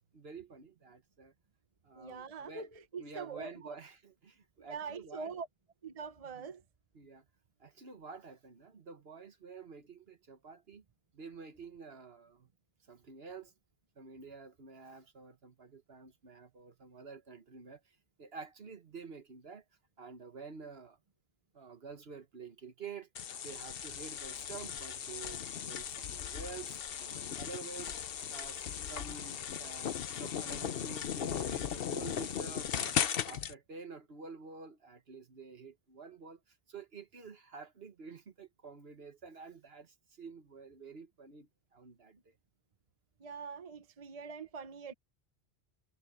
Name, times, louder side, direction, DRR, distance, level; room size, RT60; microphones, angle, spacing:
voice 1, 0.1-1.3 1.8-2.7 3.0-5.3 6.3-6.5 6.9-7.2 7.6-10.8 11.1-12.5 12.9-13.5 14.0-19.6 20.0-21.0 21.5-23.1 23.4-28.6 28.9-33.0 33.2-42.3, right 5 dB, 65° right, 1.7 m, -49 dB
voice 2, 1.9-3.8 4.6-5.5 5.8-6.6 43.2-44.9, right 5 dB, 35° right, 1.0 m, -43 dB
sound 1, 23.1-33.5, left 8 dB, 60° left, 0.9 m, -37 dB
omnidirectional pair, 1.1 m